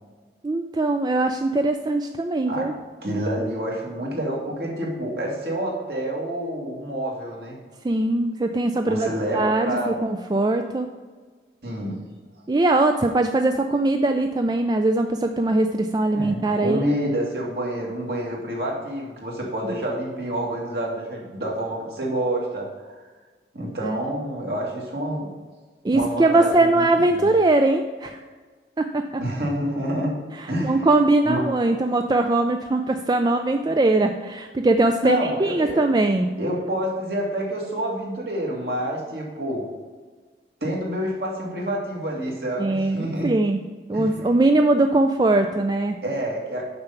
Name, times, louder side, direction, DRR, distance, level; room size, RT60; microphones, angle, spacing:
voice 1, 0.4-2.7 7.8-10.9 12.5-16.8 23.8-24.0 25.8-28.2 28.8-29.2 30.3-36.3 42.6-43.6 43.9-46.0, right 2 dB, 25° right, 6 dB, 0.3 m, -21 dB
voice 2, 3.0-7.6 8.8-10.0 11.6-12.0 16.1-22.9 23.5-25.3 25.9-27.3 29.2-30.1 30.5-30.8 31.2-31.5 35.0-35.8 36.4-39.6 40.6-43.3 43.9-44.1 46.0-46.6, right 1 dB, 65° right, -2 dB, 2.3 m, -28 dB
6.7 x 5.7 x 7.0 m, 1.4 s
head